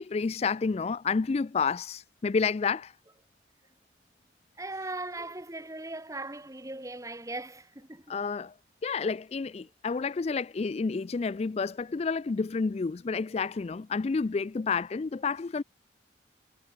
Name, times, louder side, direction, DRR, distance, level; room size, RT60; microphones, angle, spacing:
voice 1, 0.0-2.9 8.1-8.5 8.8-15.6, left 4 dB, 35° left, 0.3 m, -30 dB
voice 2, 4.6-8.1, right 2 dB, 15° right, 1.8 m, -39 dB
head